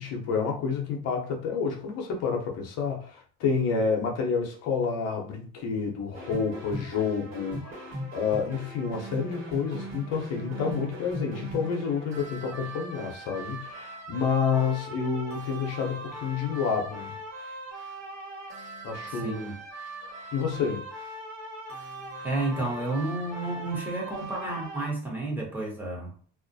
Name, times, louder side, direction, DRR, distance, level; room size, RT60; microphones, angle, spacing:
voice 1, 0.0-17.1 18.8-19.4 20.0-20.8, left 5 dB, 60° left, 0.7 m, -29 dB
sound 1, 6.1-24.9, right 1 dB, 50° right, 1.2 m, -40 dB
voice 2, 19.1-19.5 22.2-26.1, right 2 dB, 5° right, 0.9 m, -31 dB
2.3 x 2.1 x 2.6 m
supercardioid pair, 110°, 29 cm